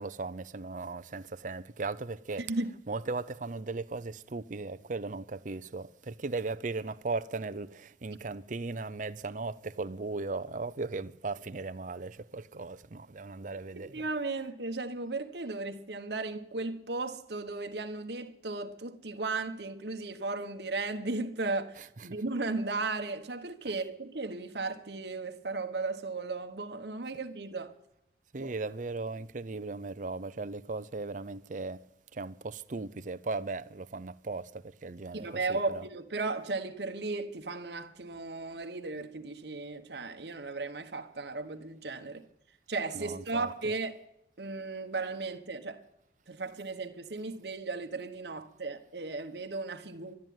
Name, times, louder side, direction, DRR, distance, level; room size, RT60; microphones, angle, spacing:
voice 1, 0.0-2.5 2.9-14.0 22.0-22.1 28.3-31.8 32.1-35.9 42.9-43.5, right 3 dB, 45° right, 0.6 m, -37 dB
voice 2, 2.4-2.7 8.1-8.2 13.7-27.7 28.4-28.5 35.1-42.2 42.7-44.0 44.4-45.8 46.3-50.1, right 3 dB, 65° right, 1.2 m, -35 dB
13.0 x 10.5 x 9.4 m
head